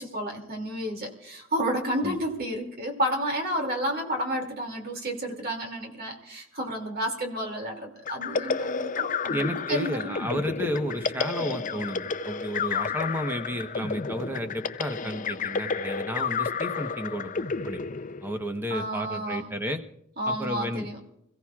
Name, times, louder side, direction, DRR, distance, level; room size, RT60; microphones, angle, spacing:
voice 1, 0.0-10.1 18.7-19.4 20.2-21.0, equal, 50° right, 3 dB, 2.5 m, -31 dB
sound 1, 8.1-18.6, left 5 dB, 40° left, 0.5 m, -31 dB
voice 2, 9.3-17.3 17.7-17.8 18.2-19.8 20.2-20.9, equal, 10° right, 6 dB, 1.0 m, -32 dB
26.5 x 16.0 x 2.4 m, 0.76 s
head